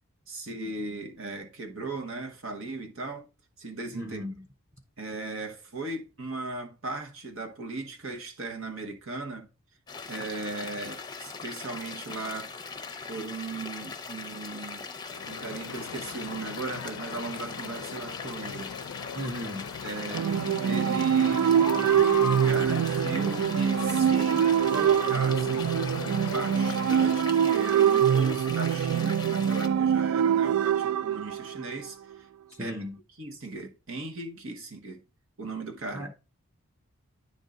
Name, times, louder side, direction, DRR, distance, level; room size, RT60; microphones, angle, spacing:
voice 1, 0.3-3.3 3.6-4.3 5.0-9.5 10.1-12.5 13.1-14.9 15.3-18.7 19.8-20.3 20.6-21.5 22.4-25.7 26.2-32.3 32.6-32.8 33.2-35.0 35.4-36.1, right 3 dB, 65° right, 1.2 m, -37 dB
voice 2, 3.9-4.5 19.1-19.7 32.6-33.0 35.9-36.1, equal, 15° right, 0.8 m, -36 dB
sound 1, 9.9-29.7, left 5 dB, 20° left, 0.7 m, -40 dB
sound 2, 15.1-27.2, left 6 dB, 85° left, 0.4 m, -39 dB
sound 3, 20.1-31.9, right 8 dB, 80° right, 0.3 m, -24 dB
9.9 x 3.6 x 3.8 m
head